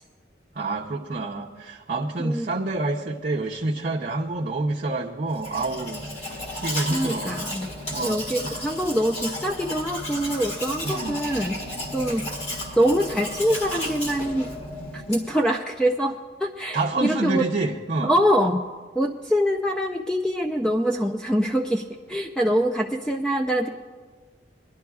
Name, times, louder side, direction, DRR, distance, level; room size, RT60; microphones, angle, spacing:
voice 1, 0.5-7.3 7.9-8.6 10.8-11.2 16.7-18.2, right 2 dB, 50° right, -3 dB, 0.7 m, -28 dB
Domestic sounds home sounds, 5.3-15.4, left 1 dB, 35° left, 1.8 m, -33 dB
voice 2, 6.9-7.7 8.0-11.6 11.9-12.2 12.8-14.5 14.9-17.4 18.0-18.6 19.0-23.7, equal, 5° left, 3 dB, 0.4 m, -24 dB
23.0 x 11.0 x 2.4 m, 1.5 s
head